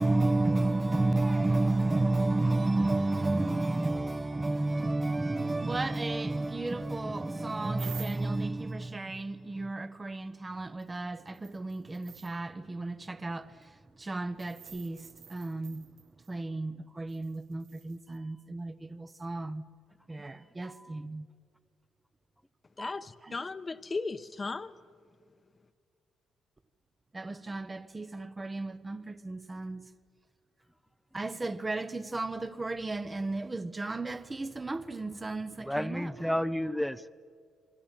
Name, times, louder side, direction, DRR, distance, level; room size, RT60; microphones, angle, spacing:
voice 1, 0.0-13.5 14.0-15.9 16.3-19.6 20.1-21.3 23.3-23.4 27.1-29.8 31.1-36.1, right 2 dB, 20° right, 1.0 m, -32 dB
sound 1, 7.8-8.4 10.8-10.9 11.3-12.4 14.4-16.3 17.1-18.2 19.2-19.3, right 9 dB, 80° right, 1.6 m, -49 dB
voice 2, 20.6-21.0 22.8-22.9 35.6-37.1, equal, ahead, 0.7 m, -32 dB
voice 3, 22.8-24.8, left 3 dB, 30° left, 1.0 m, -36 dB
28.0 x 24.5 x 7.5 m
cardioid pair, 90°, 0 cm